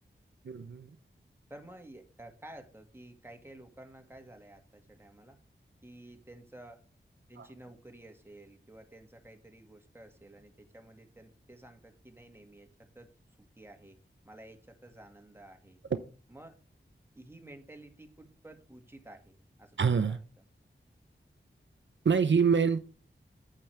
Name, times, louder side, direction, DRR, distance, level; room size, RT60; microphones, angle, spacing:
voice 1, 0.4-1.0 7.4-7.5 19.8-20.2 22.0-22.8, right 6 dB, 70° right, 11 dB, 0.7 m, -26 dB
voice 2, 1.5-5.4 5.8-6.8 7.3-13.1 13.4-14.0 14.3-15.8 16.3-16.5 17.1-20.2, right 1 dB, 10° right, 4 dB, 2.1 m, -52 dB
8.9 x 7.9 x 3.5 m, 0.38 s
wide cardioid pair, 50°, 20 cm